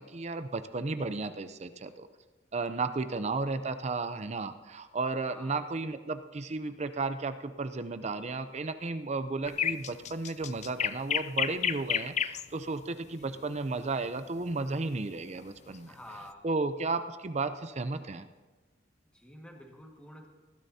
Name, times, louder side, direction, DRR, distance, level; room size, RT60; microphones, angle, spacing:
voice 1, 0.0-2.1 2.5-15.9 16.4-18.3, right 3 dB, 35° right, 10 dB, 0.6 m, -34 dB
voice 2, 5.3-5.7 13.2-13.5 15.9-16.4 19.1-20.3, left 1 dB, 5° left, 0 dB, 1.7 m, -50 dB
sound 1, 9.5-12.5 14.5-14.8, left 8 dB, 40° left, 0.4 m, -30 dB
19.5 x 12.5 x 2.8 m, 1.2 s
head